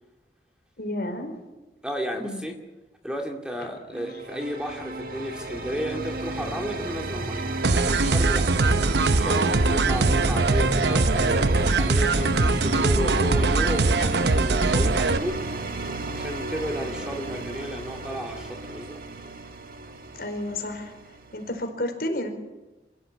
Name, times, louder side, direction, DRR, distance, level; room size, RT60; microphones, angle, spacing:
voice 1, 0.8-1.4 2.1-2.4 20.1-20.9 21.3-22.3, left 1 dB, 60° left, 5 dB, 4.6 m, -31 dB
voice 2, 1.8-2.6 3.0-8.5 9.2-15.4 16.1-19.0, equal, 5° right, 2 dB, 2.2 m, -33 dB
sound 1, 3.9-21.7, right 2 dB, 55° right, 1.7 m, -32 dB
sound 2, 7.6-15.2, right 3 dB, 75° right, 0.9 m, -22 dB
26.5 x 16.0 x 8.7 m, 1.1 s
head